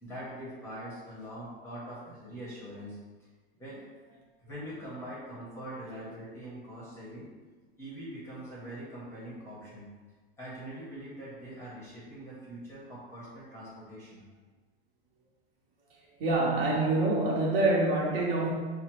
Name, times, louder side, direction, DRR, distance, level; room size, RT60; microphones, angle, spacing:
voice 1, 0.0-3.3 3.6-3.8 4.4-7.3 7.8-9.9 10.4-14.2, right 1 dB, 10° left, -8 dB, 0.7 m, -43 dB
voice 2, 16.2-18.5, right 2 dB, 60° right, -2 dB, 0.9 m, -26 dB
5.6 x 2.0 x 2.9 m, 1.3 s
supercardioid pair, 180°, 31 cm